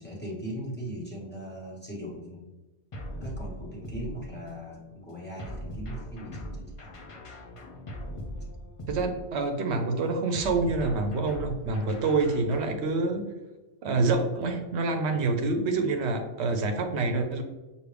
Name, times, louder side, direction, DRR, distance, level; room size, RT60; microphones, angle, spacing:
voice 1, 0.0-2.5 3.2-6.9, right 1 dB, 10° left, -6 dB, 1.2 m, -39 dB
sound 1, 2.9-4.6 5.4-9.6 10.3-12.8, equal, 35° left, 0.6 m, -40 dB
voice 2, 8.9-13.3 13.8-17.4, right 3 dB, 80° right, 5 dB, 0.9 m, -27 dB
6.3 x 2.6 x 3.3 m, 1.1 s
omnidirectional pair, 1.1 m